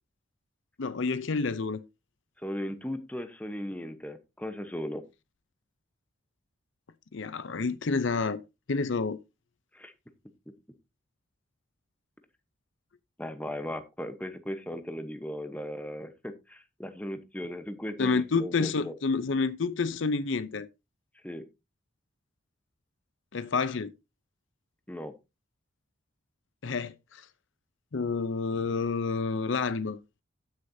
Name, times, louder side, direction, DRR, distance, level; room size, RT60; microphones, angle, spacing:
voice 1, 0.8-1.8 7.1-8.4 8.7-9.2 18.0-20.7 23.3-23.9 26.6-27.2 27.9-30.0, left 4 dB, 65° left, 0.6 m, -29 dB
voice 2, 2.4-5.0 9.7-9.9 13.2-18.9 21.2-21.4 24.9-25.1, equal, 5° left, 0.9 m, -37 dB
15.0 x 6.5 x 2.7 m
head